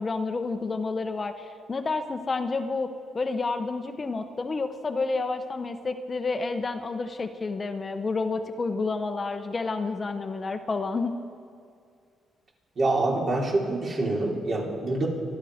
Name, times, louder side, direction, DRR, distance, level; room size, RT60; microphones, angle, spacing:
voice 1, 0.0-11.1, left 3 dB, 30° left, 7 dB, 0.9 m, -30 dB
voice 2, 12.8-15.1, right 2 dB, 50° right, -3 dB, 4.1 m, -26 dB
26.0 x 11.0 x 5.1 m, 2.3 s
cardioid pair, 90°, 0 cm